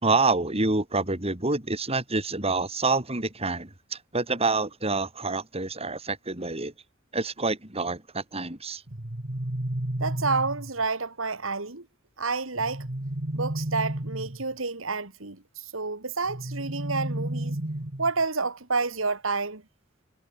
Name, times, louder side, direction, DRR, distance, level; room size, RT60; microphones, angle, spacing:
voice 1, 0.0-6.7 7.1-8.8, right 3 dB, 30° right, 4.6 m, -27 dB
sound 1, 8.9-10.8 12.6-14.5 16.3-18.2, right 1 dB, 45° right, 2.0 m, -32 dB
voice 2, 10.0-11.8 12.2-12.9 13.3-17.6 18.0-19.6, right 4 dB, 85° right, 2.8 m, -29 dB
head